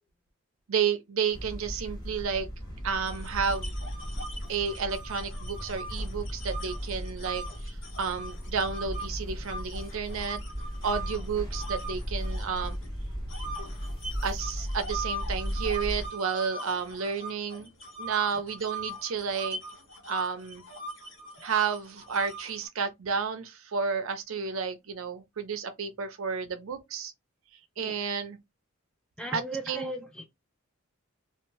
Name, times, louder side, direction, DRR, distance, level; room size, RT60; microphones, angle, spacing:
voice 1, 0.7-2.5 2.8-3.7 4.5-10.4 10.8-12.8 14.2-17.7 18.0-19.6 20.1-20.6 21.4-27.1 27.8-28.4 29.3-29.4 29.7-29.9, right 6 dB, 70° right, 0.5 m, -31 dB
sound 1, 1.3-16.1, equal, 20° left, 1.2 m, -36 dB
sound 2, 3.1-9.1 9.4-12.9 13.3-22.7, right 2 dB, 60° left, 1.1 m, -41 dB
voice 2, 29.2-30.3, right 1 dB, 5° left, 0.3 m, -37 dB
2.6 x 2.1 x 3.0 m
head